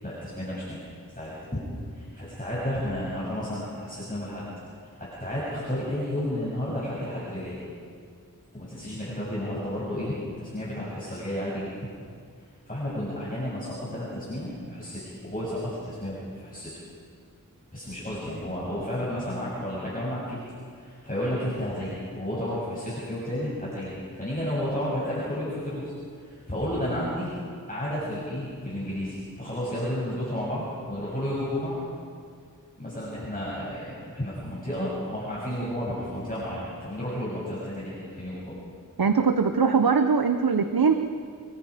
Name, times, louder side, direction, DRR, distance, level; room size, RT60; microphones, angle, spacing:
voice 1, 0.0-0.8 1.1-1.6 1.9-4.4 4.8-7.6 8.5-11.7 12.4-16.7 17.7-20.4 20.8-27.3 27.7-31.8 32.8-38.5, left 1 dB, 25° left, -8 dB, 7.4 m, -32 dB
voice 2, 39.0-40.9, right 5 dB, 90° right, 8 dB, 0.9 m, -21 dB
28.0 x 22.5 x 5.1 m, 2.2 s
wide cardioid pair, 50°, 35 cm